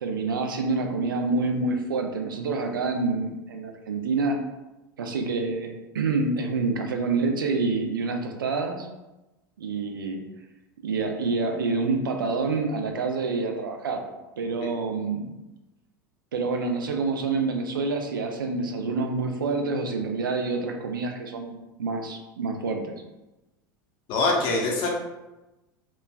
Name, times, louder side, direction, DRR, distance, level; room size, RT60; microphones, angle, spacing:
voice 1, 0.0-4.4 5.0-8.9 9.6-10.2 10.8-14.0 14.4-15.3 16.3-22.9, right 3 dB, 80° right, 4 dB, 0.4 m, -27 dB
voice 2, 24.1-24.9, left 3 dB, 50° left, -1 dB, 0.7 m, -24 dB
3.0 x 2.2 x 2.2 m, 1.0 s
figure-of-eight pair, 80°, 11 cm